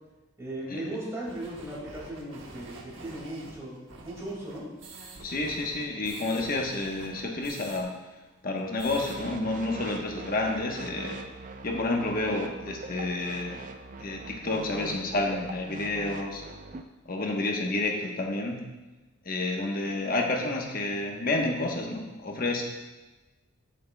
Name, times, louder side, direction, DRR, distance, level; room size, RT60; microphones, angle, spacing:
voice 1, 0.4-4.7, right 1 dB, 15° right, -6 dB, 2.1 m, -37 dB
sound 1, 1.2-7.8 8.1-8.2 8.5-9.2, right 2 dB, 70° right, 1.1 m, -47 dB
voice 2, 5.2-7.9 8.4-11.2 11.6-13.7 14.0-16.4 17.0-18.6 19.2-22.6, left 2 dB, 45° left, 1 dB, 1.1 m, -30 dB
sound 2, 8.9-16.8, right 3 dB, 40° right, 0.4 m, -42 dB
11.5 x 6.5 x 2.2 m, 1.1 s
head